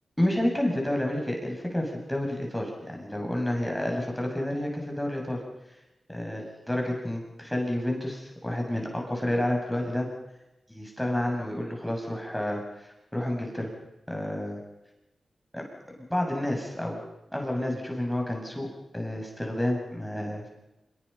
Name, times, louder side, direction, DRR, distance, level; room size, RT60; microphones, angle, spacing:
voice 1, 0.2-5.4 6.1-10.1 10.7-13.7 14.1-14.6 15.5-15.6 16.1-17.0 17.3-18.7 18.9-20.5, left 1 dB, 5° left, 1 dB, 7.5 m, -30 dB
26.5 x 22.5 x 5.8 m, 0.95 s
cardioid pair, 45°, 0 cm